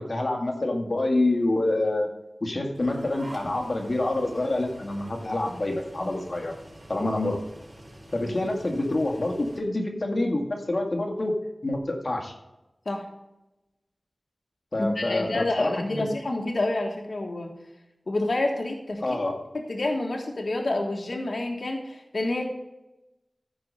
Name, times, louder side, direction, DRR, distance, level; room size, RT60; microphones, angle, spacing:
voice 1, 0.0-2.1 2.4-6.5 6.9-7.4 8.1-11.3 11.6-12.3 14.7-16.1 19.0-19.4, left 2 dB, 50° left, 2 dB, 2.1 m, -27 dB
sound 1, 2.7-9.6, right 1 dB, 25° right, 3.8 m, -45 dB
voice 2, 14.8-17.5 18.1-19.0 19.7-22.4, left 2 dB, 65° left, 1 dB, 1.4 m, -28 dB
15.0 x 5.0 x 5.6 m, 0.97 s
wide cardioid pair, 65°, 0 cm